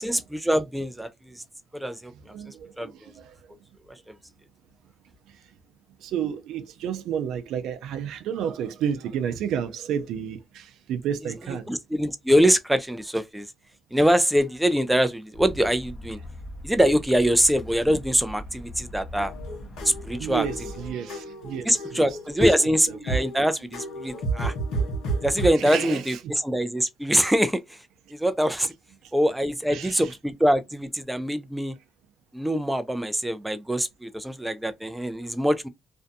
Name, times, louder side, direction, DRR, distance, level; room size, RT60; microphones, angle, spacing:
voice 1, 0.0-1.4 1.7-2.1 2.5-2.9 3.9-4.1 11.7-13.5 13.9-16.2 16.6-19.3 19.8-20.5 21.7-24.5 25.2-27.8 28.1-28.7 29.1-31.7 32.3-35.7, equal, 5° right, 0.4 m, -24 dB
voice 2, 2.1-3.4 5.3-5.4 6.0-11.7 20.2-22.1 22.4-22.5 22.9-23.0 25.6-26.2 29.0-29.1 29.7-30.1, right 8 dB, 85° right, 0.4 m, -31 dB
sound 1, 15.3-20.9, left 1 dB, 35° left, 0.8 m, -40 dB
sound 2, 19.2-25.5, right 3 dB, 85° left, 0.9 m, -32 dB
2.5 x 2.2 x 2.5 m
cardioid pair, 90°, 0 cm